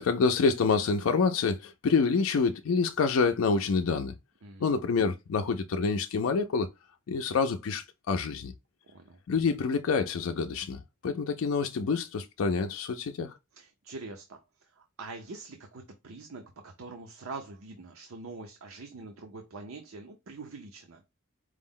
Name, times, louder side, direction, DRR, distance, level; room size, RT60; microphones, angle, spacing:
voice 1, 0.0-4.1 4.6-6.7 7.1-8.5 9.3-13.3, left 5 dB, 75° left, 0.4 m, -27 dB
voice 2, 8.8-9.2 13.5-21.0, right 3 dB, 85° right, 0.6 m, -44 dB
4.8 x 2.0 x 3.6 m
head